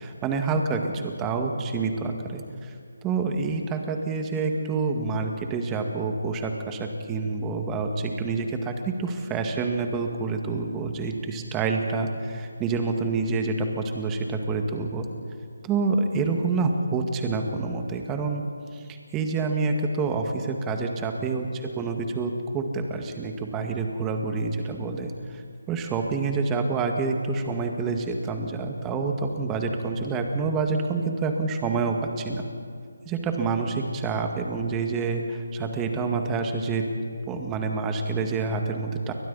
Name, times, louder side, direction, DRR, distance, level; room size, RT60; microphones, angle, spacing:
voice 1, 0.0-2.4 3.0-15.1 15.6-18.4 18.7-18.8 19.1-21.5 21.8-25.4 25.7-32.4 33.1-36.9 37.3-39.1, right 4 dB, 15° right, 4 dB, 1.8 m, -27 dB
29.5 x 23.5 x 4.1 m, 2.2 s
figure-of-eight pair, 160°, 0 cm